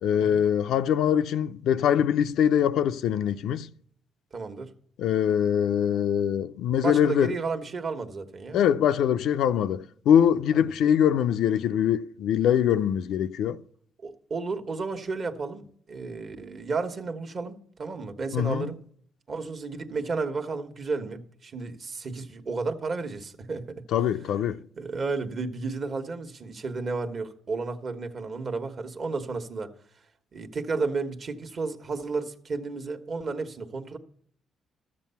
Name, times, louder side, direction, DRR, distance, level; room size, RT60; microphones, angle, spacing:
voice 1, 0.0-3.7 5.0-7.3 8.5-13.6 18.3-18.7 23.9-24.6, left 9 dB, 80° left, 0.4 m, -23 dB
voice 2, 4.3-4.7 6.8-8.6 10.5-10.7 14.0-18.8 19.3-23.8 24.8-29.7 30.3-34.0, right 4 dB, 50° right, 1.2 m, -32 dB
13.0 x 7.5 x 5.6 m
cardioid pair, 90°, 0 cm